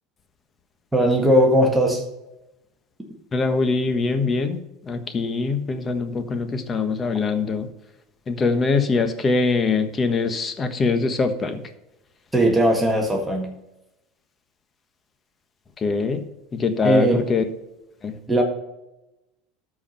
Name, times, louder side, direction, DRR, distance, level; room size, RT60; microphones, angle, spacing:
voice 1, 0.9-2.0 12.3-13.5 16.8-17.2 18.3-18.4, equal, 10° right, 1 dB, 1.7 m, -18 dB
voice 2, 3.3-4.6 4.8-7.7 8.3-11.6 15.8-16.2 16.5-17.4 18.0-18.2, left 4 dB, 25° left, 8 dB, 1.3 m, -23 dB
13.0 x 4.8 x 5.7 m, 0.93 s
supercardioid pair, 115°, 0 cm